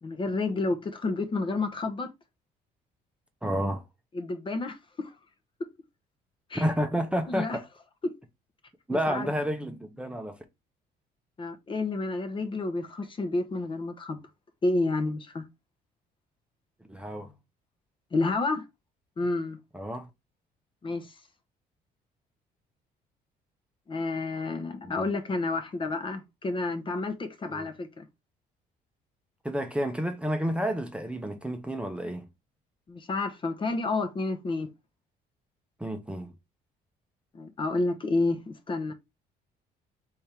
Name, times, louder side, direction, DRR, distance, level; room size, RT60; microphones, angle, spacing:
voice 1, 0.0-2.1 4.1-5.1 6.5-6.7 7.3-7.6 8.9-9.3 11.4-14.2 14.6-15.4 18.1-18.7 19.2-19.6 20.8-21.2 23.9-28.0 32.9-34.7 37.3-38.9, left 3 dB, 30° left, 0.8 m, -30 dB
voice 2, 3.4-3.8 6.5-7.6 8.9-10.4 16.9-17.3 19.7-20.1 24.8-25.1 27.5-27.7 29.4-32.3 35.8-36.3, equal, 5° right, 0.7 m, -30 dB
3.5 x 3.5 x 4.3 m
cardioid pair, 110°, 17 cm